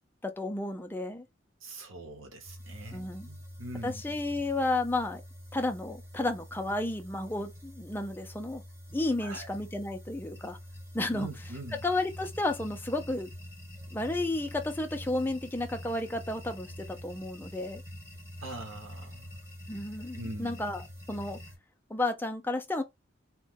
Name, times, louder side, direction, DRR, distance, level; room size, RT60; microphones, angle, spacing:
voice 1, 0.2-1.2 2.9-3.3 3.8-5.2 5.5-8.6 8.9-10.6 10.9-11.3 11.8-13.3 13.9-17.8 19.7-20.8 21.1-21.4 21.9-22.8, left 2 dB, 10° left, 0.4 m, -32 dB
voice 2, 1.6-4.2 9.2-9.5 11.1-11.8 18.4-19.4 20.1-20.6, right 2 dB, 85° right, 1.0 m, -43 dB
sound 1, 2.4-21.6, equal, 15° right, 1.3 m, -46 dB
3.1 x 2.2 x 3.5 m
head